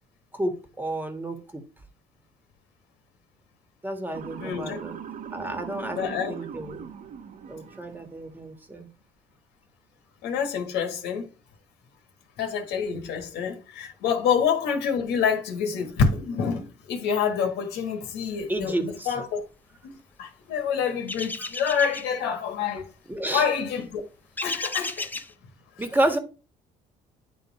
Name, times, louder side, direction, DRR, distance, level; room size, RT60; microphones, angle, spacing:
voice 1, 0.3-1.6 3.8-5.0 5.3-6.8 7.5-8.9 18.5-19.1 21.4-21.5 23.1-23.5 25.8-26.2, right 1 dB, 10° right, 1.5 m, -30 dB
Motor vehicle (road) / Siren, 4.1-8.3, right 8 dB, 50° right, 1.0 m, -40 dB
voice 2, 4.4-4.8 5.9-6.3 10.2-11.3 12.4-19.4 19.8-22.9 23.3-24.0 24.4-25.1, left 6 dB, 85° left, 1.5 m, -27 dB
sound 1, 21.1-22.1 24.4-25.3, left 2 dB, 10° left, 0.5 m, -33 dB
9.8 x 3.7 x 4.2 m
cardioid pair, 110°, 17 cm